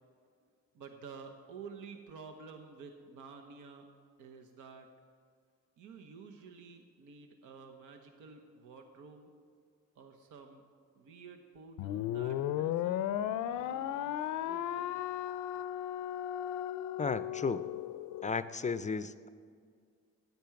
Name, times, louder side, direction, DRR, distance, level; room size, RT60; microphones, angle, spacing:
voice 1, 0.7-3.9 4.2-4.9 5.8-9.3 9.9-10.6 11.0-13.1 13.5-15.0, right 5 dB, 85° right, 4 dB, 1.0 m, -51 dB
sound 1, 11.8-18.3, left 11 dB, 90° left, 0.5 m, -35 dB
voice 2, 17.0-17.6 18.2-19.3, left 5 dB, 25° left, 13 dB, 0.4 m, -34 dB
13.0 x 9.5 x 5.8 m, 2.1 s
cardioid pair, 90°, 30 cm